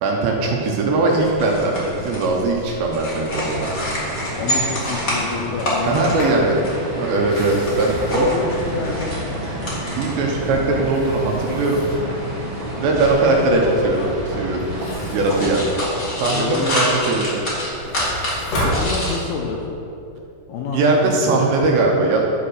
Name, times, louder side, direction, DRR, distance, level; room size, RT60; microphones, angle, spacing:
voice 1, 0.0-3.7 5.9-6.6 6.9-8.3 10.0-11.8 12.8-14.7 15.0-15.7 16.2-17.4 20.7-22.2, right 2 dB, 75° right, -1 dB, 3.1 m, -20 dB
sound 1, 1.1-19.2, left 1 dB, 30° left, 1.6 m, -29 dB
sound 2, 3.3-15.9, right 1 dB, 45° right, 2.9 m, -30 dB
voice 2, 4.4-6.7 8.2-9.6 16.3-17.0 18.6-19.8 20.5-21.5, left 5 dB, 75° left, -1 dB, 2.4 m, -28 dB
Sliding door, 5.7-6.5 7.1-9.5 10.0-12.2 14.6-16.5 17.0-19.5, equal, 50° left, 3.7 m, -32 dB
11.5 x 5.4 x 6.4 m, 2.8 s
omnidirectional pair, 5.1 m